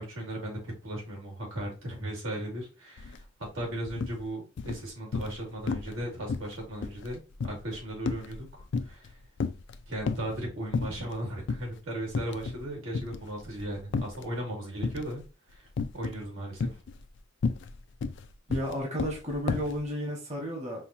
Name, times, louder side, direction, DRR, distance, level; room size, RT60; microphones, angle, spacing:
voice 1, 0.0-3.2 3.5-9.2 9.9-15.2 15.5-15.7 15.9-16.8, right 1 dB, 85° right, 2.2 m, -37 dB
Walking Wood, 3.0-3.2 3.5-4.2 4.6-5.4 5.7-6.0 6.3-9.1 9.4-10.4 10.7-11.2 11.5-11.7 12.1-12.7 12.9-14.3 14.8-15.2 15.8-16.2 16.6-19.8, left 4 dB, 60° left, 0.4 m, -32 dB
voice 2, 18.5-20.8, equal, 35° right, 1.2 m, -33 dB
5.5 x 2.3 x 2.6 m
head